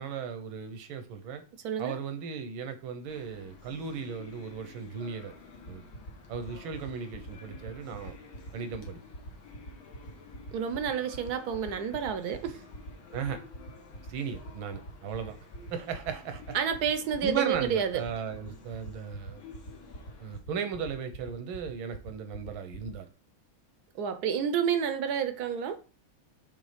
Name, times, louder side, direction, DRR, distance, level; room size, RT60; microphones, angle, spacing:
voice 1, 0.0-1.4 1.8-5.3 5.7-5.9 6.3-8.1 8.5-9.0 13.1-13.4 14.1-15.3 15.7-16.6 17.2-19.4 20.2-23.1, right 6 dB, 80° right, 1.7 m, -36 dB
voice 2, 1.6-1.9 10.5-12.6 16.5-18.0 23.9-25.8, right 8 dB, 65° right, 1.1 m, -29 dB
sound 1, 3.1-20.4, left 4 dB, 75° left, 2.0 m, -52 dB
sound 2, 5.5-22.9, right 1 dB, 60° left, 2.3 m, -42 dB
6.3 x 3.6 x 5.0 m
omnidirectional pair, 2.2 m